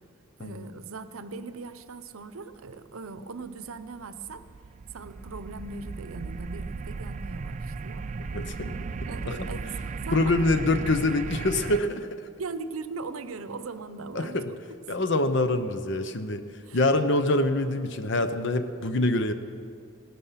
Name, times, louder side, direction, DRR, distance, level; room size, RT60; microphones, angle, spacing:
voice 1, 0.4-4.5 4.9-8.0 9.1-9.7 10.1-10.4 12.4-14.6 16.7-16.8, right 3 dB, 85° right, 12 dB, 0.7 m, -39 dB
sound 1, 3.4-11.8, right 4 dB, 35° right, 0.3 m, -36 dB
voice 2, 8.2-8.7 9.2-9.5 10.1-12.1 14.1-14.5 14.9-16.4 16.7-19.3, left 2 dB, 55° left, 10 dB, 0.8 m, -25 dB
17.0 x 12.5 x 5.8 m, 2.2 s
head